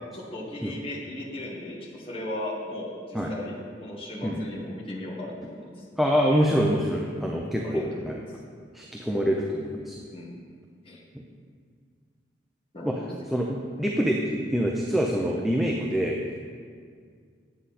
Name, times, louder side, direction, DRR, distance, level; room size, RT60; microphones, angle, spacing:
voice 1, 0.1-5.9 7.6-8.2 10.1-10.4 10.8-11.0 12.7-13.1, left 1 dB, 30° left, -5 dB, 1.5 m, -37 dB
voice 2, 6.0-8.2 8.7-10.0 12.8-12.9 13.3-16.2, equal, ahead, -1 dB, 0.6 m, -25 dB
9.6 x 7.6 x 4.2 m, 2.1 s
head